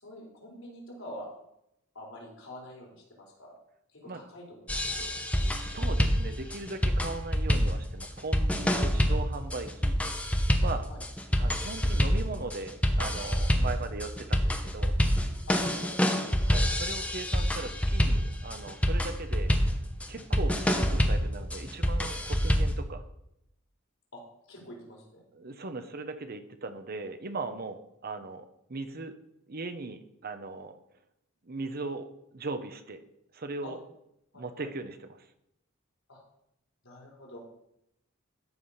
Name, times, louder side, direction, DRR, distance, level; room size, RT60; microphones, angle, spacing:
voice 1, 0.0-1.3 1.9-3.6 3.9-5.2 10.9-11.0 15.5-16.2 24.1-24.2 24.5-25.2 33.6-33.7 34.3-34.7 36.1-36.2 36.8-37.4, left 1 dB, 75° left, -3 dB, 4.2 m, -46 dB
sound 1, 4.7-22.8, equal, 5° left, 0.9 m, -27 dB
voice 2, 5.4-10.0 10.6-10.9 11.4-14.9 16.5-19.5 20.1-23.0 25.3-29.1 29.5-30.8 31.4-33.0 33.3-33.8 34.3-35.3, right 3 dB, 50° right, 9 dB, 0.9 m, -39 dB
13.0 x 5.0 x 5.6 m, 0.81 s
head